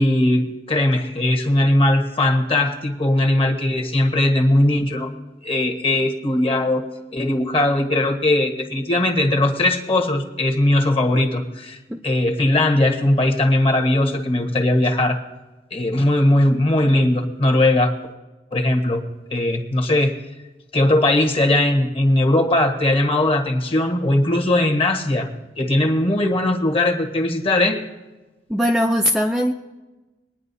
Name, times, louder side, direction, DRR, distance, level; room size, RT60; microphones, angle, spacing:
voice 1, 0.0-5.1 5.4-6.8 7.1-11.8 12.0-15.2 15.7-17.9 18.5-19.0 19.3-20.2 20.7-25.3 25.6-27.8, left 1 dB, 30° left, 3 dB, 1.4 m, -19 dB
voice 2, 28.5-29.5, equal, 5° right, 1 dB, 0.5 m, -20 dB
22.5 x 9.8 x 2.7 m, 1.1 s
head